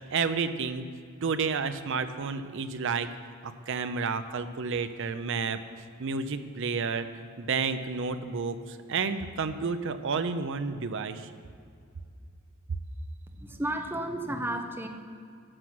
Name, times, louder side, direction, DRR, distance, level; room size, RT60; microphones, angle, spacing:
voice 1, 0.1-0.8 1.2-3.1 3.4-5.6 6.0-7.1 7.4-11.3, right 5 dB, 60° right, 10 dB, 0.6 m, -30 dB
voice 2, 13.4-14.9, right 1 dB, 10° right, 4 dB, 0.7 m, -32 dB
11.0 x 6.1 x 6.1 m, 2.3 s
head